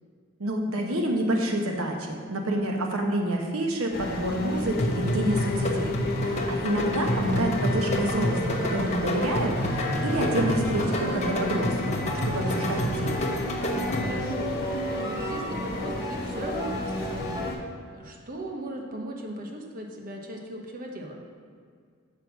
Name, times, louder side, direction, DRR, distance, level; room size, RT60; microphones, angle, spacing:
voice 1, 0.4-12.0 12.2-13.2, right 1 dB, 90° right, 1 dB, 1.0 m, -28 dB
sound 1, 3.9-17.6, left 1 dB, 50° left, 1.4 m, -32 dB
sound 2, 4.8-14.3, left 1 dB, 35° left, 1.0 m, -29 dB
voice 2, 6.2-6.6 13.7-21.2, right 1 dB, 45° right, 1 dB, 1.0 m, -39 dB
sound 3, 10.6-17.5, equal, 15° right, 1.1 m, -35 dB
7.8 x 5.9 x 5.9 m, 2.1 s
head